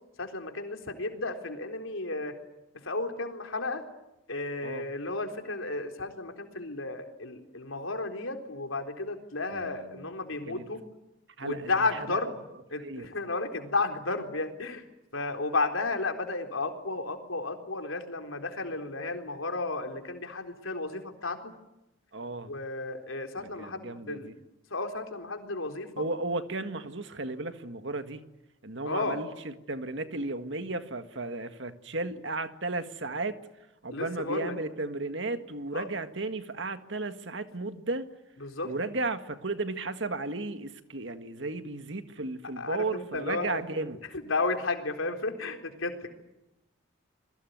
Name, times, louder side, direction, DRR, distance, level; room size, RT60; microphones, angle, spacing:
voice 1, 0.2-2.3 2.8-3.8 4.3-10.8 11.4-12.4 12.7-14.8 15.1-21.5 22.5-24.3 24.7-26.0 28.8-29.2 33.9-34.5 35.7-35.9 38.4-38.7 42.6-43.6 44.3-46.1, left 3 dB, 85° left, 5 dB, 4.0 m, -33 dB
voice 2, 9.5-10.1 10.5-10.7 11.4-12.3 12.8-13.1 22.1-22.5 23.6-24.3 26.0-28.2 28.6-33.4 33.8-38.1 38.6-44.0, right 2 dB, 65° right, 9 dB, 1.8 m, -34 dB
27.5 x 22.0 x 9.5 m, 0.92 s
head